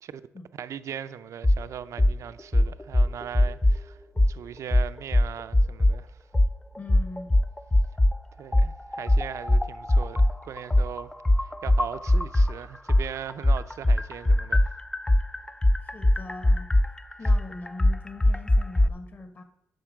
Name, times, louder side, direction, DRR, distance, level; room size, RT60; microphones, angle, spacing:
voice 1, 0.6-4.0 4.3-6.1 8.4-11.1 11.6-14.7, right 9 dB, 70° right, 0.6 m, -39 dB
sound 1, 1.4-1.6 2.0-2.2 2.5-3.8 4.2-4.3 4.7-6.0 6.3-6.5 6.9-8.2 8.5-12.5 12.9-18.9, left 1 dB, 10° left, 0.4 m, -20 dB
voice 2, 6.8-7.3 15.9-16.7 17.2-19.4, left 2 dB, 35° left, 1.5 m, -41 dB
10.5 x 6.5 x 5.0 m
cardioid pair, 100°, 5 cm